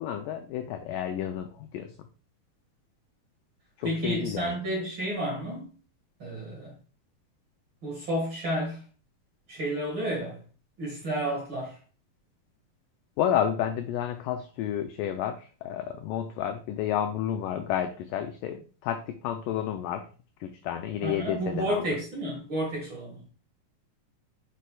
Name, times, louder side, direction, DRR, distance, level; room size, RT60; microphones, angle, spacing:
voice 1, 0.0-2.1 3.8-4.6 13.2-20.1 20.4-21.8, left 10 dB, 85° left, 1.9 m, -31 dB
voice 2, 3.8-5.7 6.2-6.7 7.8-8.8 9.5-10.4 10.8-11.8 21.0-23.2, right 1 dB, 45° right, 1.8 m, -31 dB
6.7 x 6.2 x 2.3 m
omnidirectional pair, 4.3 m